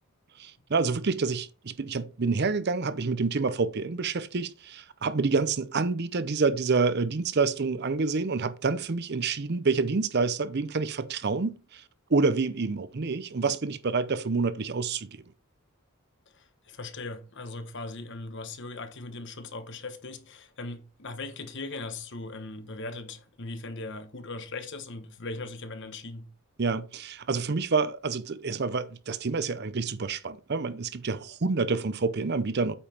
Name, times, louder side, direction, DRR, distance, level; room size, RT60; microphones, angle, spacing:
voice 1, 0.4-11.8 12.1-15.1 26.6-32.7, right 4 dB, 45° right, 0.6 m, -28 dB
voice 2, 16.3-26.3, left 3 dB, 55° left, 1.2 m, -39 dB
8.6 x 5.3 x 4.4 m
head